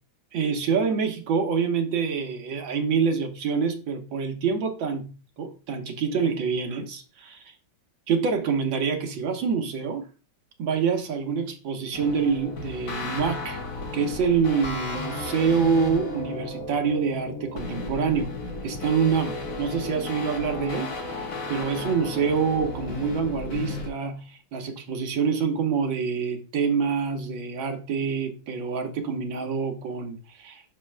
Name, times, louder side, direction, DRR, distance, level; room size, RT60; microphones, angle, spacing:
voice 1, 0.3-5.1 5.4-7.4 8.1-10.1 10.6-13.6 13.9-18.3 18.6-30.6, right 6 dB, 80° right, 1.9 m, -26 dB
sound 1, 11.9-23.9, left 2 dB, 45° left, 1.6 m, -34 dB
9.8 x 6.5 x 2.3 m
omnidirectional pair, 2.1 m